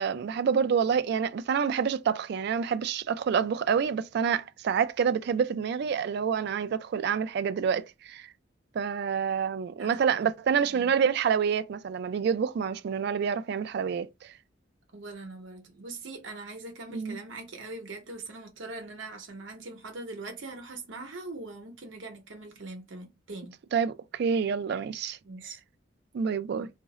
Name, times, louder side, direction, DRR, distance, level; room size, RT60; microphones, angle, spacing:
voice 1, 0.0-8.3 8.7-14.1 16.9-17.2 23.7-25.2 26.1-26.7, right 7 dB, 55° right, 0.3 m, -27 dB
voice 2, 9.8-10.2 10.7-10.9 14.9-23.5 25.2-25.6 26.6-26.7, right 2 dB, 80° right, 0.9 m, -42 dB
2.5 x 2.0 x 3.7 m
head